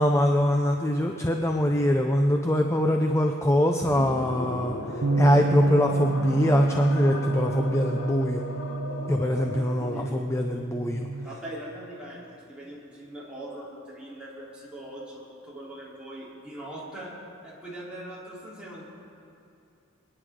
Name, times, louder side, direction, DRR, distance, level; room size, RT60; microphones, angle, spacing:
voice 1, 0.0-4.8 5.2-8.4 9.1-11.1, left 1 dB, 15° left, 3 dB, 0.6 m, -23 dB
sound 1, 3.8-10.3, left 2 dB, 60° left, 1.1 m, -36 dB
Bass guitar, 5.0-11.3, right 3 dB, 65° right, 0.4 m, -29 dB
voice 2, 11.2-17.1 17.4-18.8, right 1 dB, 5° right, -8 dB, 3.7 m, -41 dB
26.5 x 10.0 x 3.8 m, 2.5 s
head